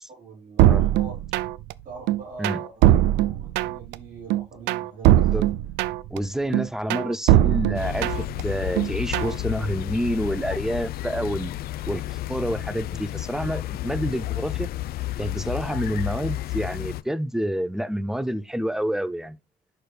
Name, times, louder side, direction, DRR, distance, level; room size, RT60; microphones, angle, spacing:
voice 1, 0.2-1.2 1.8-2.9 3.1-5.3 6.5-6.6, right 4 dB, 55° right, 4.6 m, -42 dB
sound 1, 0.6-1.7 2.1-3.9 4.3-6.2 6.5-8.4 8.8-9.4, right 14 dB, 90° right, 0.4 m, -20 dB
voice 2, 6.1-11.5 11.9-14.7 15.2-19.4, equal, 5° right, 0.5 m, -28 dB
sound 2, 7.7-17.0, left 15 dB, 65° left, 0.5 m, -31 dB
6.7 x 5.8 x 3.3 m
cardioid pair, 110°, 17 cm